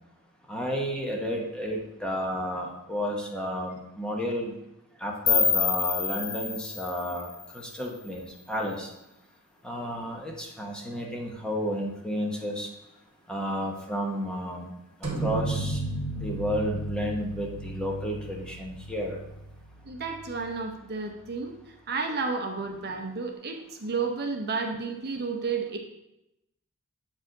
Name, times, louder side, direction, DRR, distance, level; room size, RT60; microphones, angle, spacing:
voice 1, 0.5-4.5 5.0-8.9 9.6-12.7 13.3-14.7 15.2-15.8 16.2-19.2, equal, 5° left, -1 dB, 1.0 m, -32 dB
sound 1, 5.3-8.2, left 7 dB, 20° left, 0.4 m, -28 dB
sound 2, 15.0-20.6, right 2 dB, 30° right, 2.2 m, -34 dB
voice 2, 19.9-21.5 21.9-25.8, right 4 dB, 45° right, 3 dB, 0.8 m, -31 dB
7.9 x 4.8 x 3.8 m, 0.88 s
head